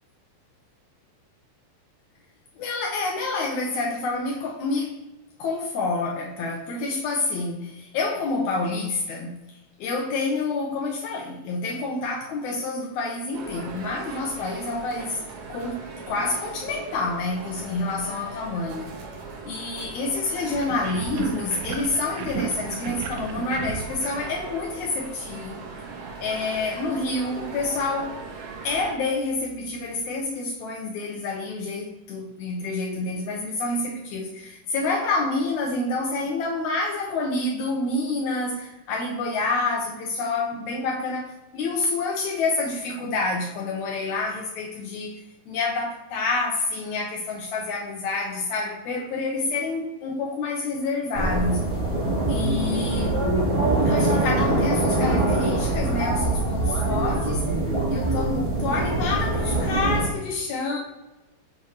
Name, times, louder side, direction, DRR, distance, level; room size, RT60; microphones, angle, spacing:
voice 1, 2.6-5.0 5.4-9.4 9.8-15.2 15.5-18.9 19.4-25.6 26.2-28.2 28.6-51.7 52.3-53.2 53.8-57.4 57.9-60.8, left 3 dB, 85° left, -1 dB, 1.7 m, -28 dB
sound 1, 13.3-28.9, right 4 dB, 70° right, 1.8 m, -39 dB
sound 2, 20.5-25.1, right 7 dB, 90° right, 1.7 m, -34 dB
sound 3, 51.1-60.0, right 2 dB, 10° right, 1.4 m, -23 dB
7.5 x 5.8 x 2.8 m, 1.0 s
omnidirectional pair, 4.4 m